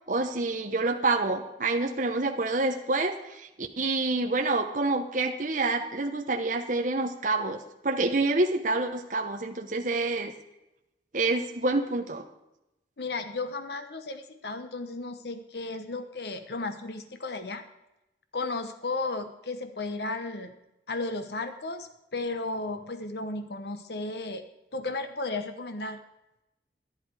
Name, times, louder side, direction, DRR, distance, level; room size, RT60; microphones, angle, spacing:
voice 1, 0.1-10.3 11.1-12.2, right 3 dB, 45° right, 3 dB, 0.9 m, -27 dB
voice 2, 13.0-17.6 18.3-20.5 20.9-24.4 24.7-26.0, left 3 dB, 60° left, 8 dB, 0.9 m, -34 dB
12.5 x 11.5 x 4.8 m, 0.93 s
head